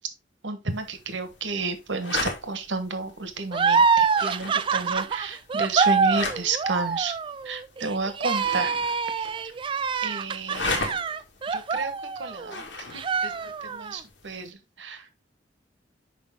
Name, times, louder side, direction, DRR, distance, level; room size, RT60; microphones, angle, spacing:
voice 1, 0.4-7.1 7.4-8.7 9.2-9.3 10.0-10.9 11.5-15.1, right 4 dB, 75° right, 9 dB, 1.3 m, -31 dB
sound 1, 0.7-14.5, left 3 dB, 75° left, 1.6 m, -38 dB
sound 2, 3.5-12.6 12.9-14.0, right 5 dB, 25° right, 0.3 m, -25 dB
6.2 x 5.3 x 3.5 m, 0.25 s
head